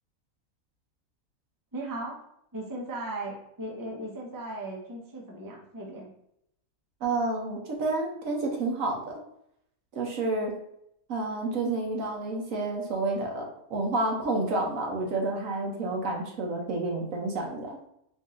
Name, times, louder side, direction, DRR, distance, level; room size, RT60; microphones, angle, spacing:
voice 1, 1.7-2.2 2.5-6.1, right 2 dB, 20° right, -2 dB, 0.6 m, -37 dB
voice 2, 7.0-9.0 9.9-10.5 11.1-17.8, right 2 dB, 65° right, 0 dB, 1.2 m, -29 dB
3.8 x 2.7 x 3.7 m, 0.75 s
omnidirectional pair, 1.6 m